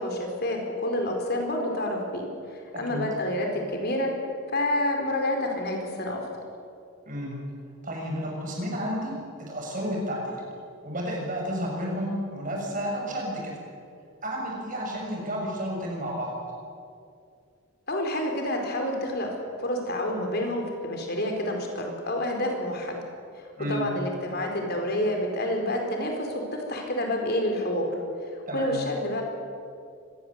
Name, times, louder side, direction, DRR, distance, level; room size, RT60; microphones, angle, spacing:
voice 1, 0.0-4.1 4.5-6.2 17.9-19.3 19.6-23.0 23.4-27.9 28.3-29.2, left 1 dB, 50° left, 2 dB, 4.4 m, -28 dB
voice 2, 7.1-7.4 7.8-9.1 9.4-10.4 10.8-13.5 14.2-16.4 23.6-23.8 28.5-28.7, equal, 40° right, -1 dB, 7.2 m, -31 dB
25.5 x 20.5 x 8.2 m, 2.4 s
head